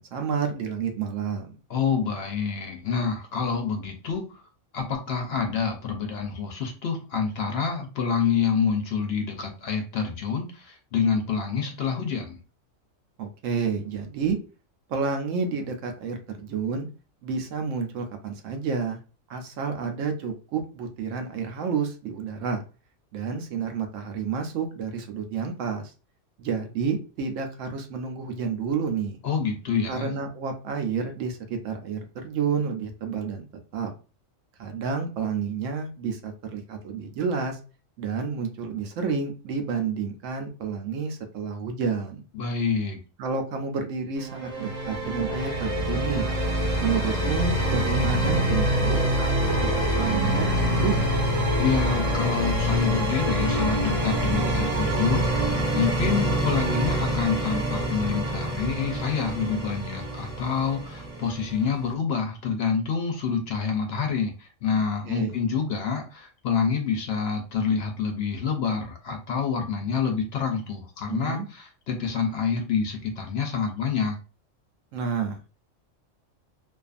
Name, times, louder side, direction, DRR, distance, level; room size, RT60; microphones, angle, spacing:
voice 1, 0.0-1.5 13.2-14.4 14.9-16.9 17.2-19.0 19.3-22.6 23.1-25.9 26.4-29.2 29.9-33.5 33.7-33.9 34.6-37.6 38.0-42.2 43.2-46.3 46.8-49.7 49.9-51.1 65.1-65.3 71.1-71.4 74.9-75.4, right 5 dB, 75° right, 5 dB, 0.9 m, -30 dB
voice 2, 1.7-4.4 4.7-12.4 29.2-30.2 42.3-43.0 51.6-74.2, left 6 dB, 65° left, 3 dB, 0.7 m, -27 dB
sound 1, 44.2-61.9, equal, 30° right, 0.8 m, -26 dB
2.5 x 2.4 x 2.4 m, 0.34 s
omnidirectional pair, 1.3 m